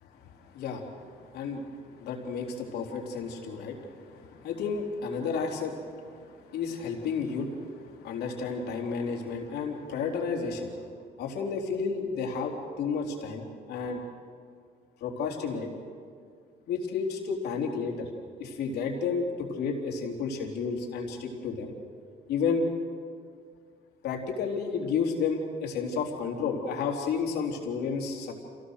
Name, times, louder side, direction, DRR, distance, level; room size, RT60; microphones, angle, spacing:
voice 1, 0.4-10.8 11.2-14.0 15.0-15.7 16.7-18.1 18.4-21.7 22.3-22.7 24.0-28.3, left 5 dB, 75° left, 0 dB, 3.7 m, -32 dB
27.0 x 17.5 x 6.5 m, 2.2 s
cardioid pair, 110°, 17 cm